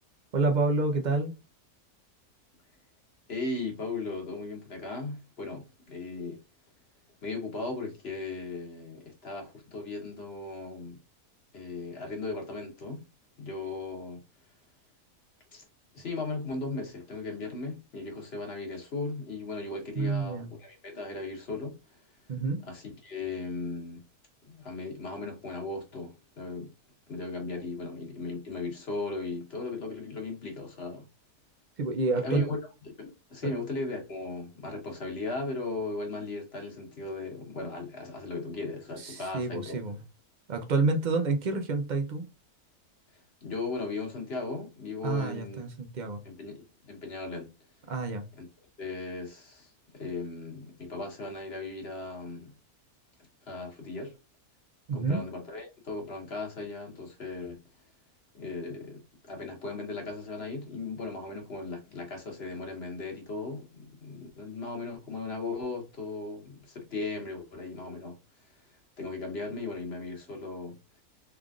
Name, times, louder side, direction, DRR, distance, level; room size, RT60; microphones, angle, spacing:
voice 1, 0.3-1.3 20.0-20.5 22.3-22.6 31.8-32.5 39.0-40.0 40.5-42.3 45.0-46.2 47.9-48.2 54.9-55.2, right 3 dB, 65° right, 0.4 m, -28 dB
voice 2, 3.3-6.4 7.2-11.0 11.5-13.0 13.4-14.2 15.5-15.6 15.9-22.0 22.6-24.0 24.4-26.7 27.1-31.1 32.2-32.6 33.0-39.8 43.4-45.6 46.2-47.5 48.4-48.5 48.8-52.5 53.4-54.2 54.9-57.6 58.3-68.2 68.4-68.6 69.0-71.0, left 3 dB, 45° left, 1.3 m, -37 dB
3.6 x 3.4 x 2.3 m
omnidirectional pair, 1.6 m